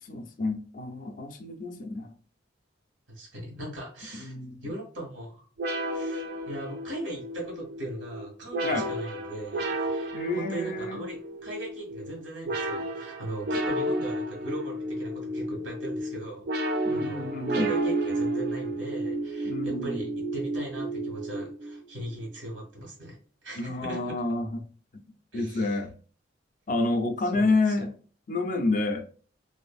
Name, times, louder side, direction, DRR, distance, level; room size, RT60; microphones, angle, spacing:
voice 1, 0.1-2.1 4.1-4.7 8.6-8.9 10.1-11.0 16.8-17.7 19.4-20.1 23.6-24.6 25.3-25.9 26.7-27.9 28.3-29.1, left 2 dB, 45° left, 0.4 m, -29 dB
voice 2, 3.1-4.3 4.6-5.5 5.9-16.4 16.9-23.2 23.4-24.1 25.3-25.8 27.3-27.8, right 1 dB, 90° right, 1.3 m, -39 dB
sound 1, 5.6-21.8, right 1 dB, 50° right, 0.4 m, -32 dB
2.5 x 2.4 x 2.4 m
head